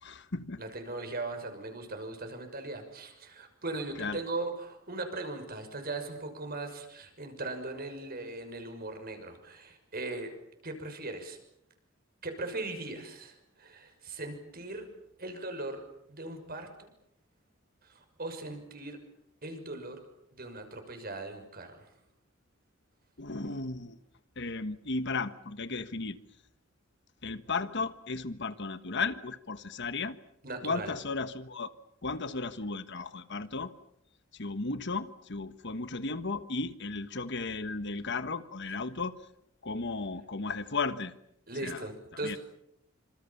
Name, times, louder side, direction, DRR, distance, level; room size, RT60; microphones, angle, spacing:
voice 1, 0.0-0.6 4.0-4.2 23.2-24.0 24.4-26.2 27.2-30.2 30.6-31.7 32.0-33.7 34.3-39.2 39.6-41.1 41.6-41.8 42.2-42.4, left 3 dB, 60° left, 1.4 m, -35 dB
voice 2, 0.6-10.3 10.6-11.4 12.2-14.9 15.2-15.8 16.1-16.9 17.8-19.0 19.4-20.0 20.3-21.8 30.4-30.9 41.5-42.4, right 2 dB, 45° right, 6.1 m, -39 dB
27.0 x 27.0 x 7.3 m
head